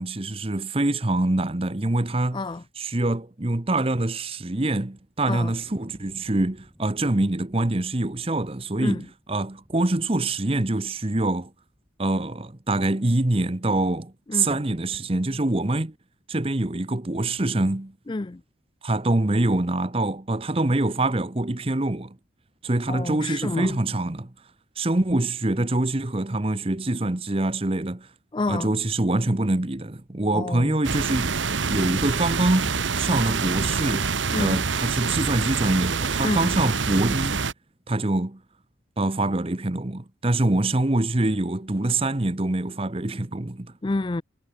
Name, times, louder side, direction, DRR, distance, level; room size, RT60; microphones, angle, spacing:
voice 1, 0.0-2.4 2.8-11.5 12.0-15.9 16.3-17.9 18.8-22.2 22.6-24.3 24.8-28.1 28.5-31.4 31.7-37.4 37.9-38.4 39.0-43.7, right 2 dB, 30° right, 1.0 m, -25 dB
voice 2, 2.3-2.6 5.2-5.5 8.8-9.1 14.3-14.6 18.1-18.4 22.9-23.8 28.3-28.7 30.3-30.8 34.3-34.6 36.2-36.5 43.8-44.2, left 2 dB, 25° left, 0.4 m, -29 dB
sound 1, 5.4-10.6 11.2-11.9, equal, 5° right, 5.2 m, -55 dB
sound 2, 30.8-37.5, right 5 dB, 85° right, 1.2 m, -26 dB
head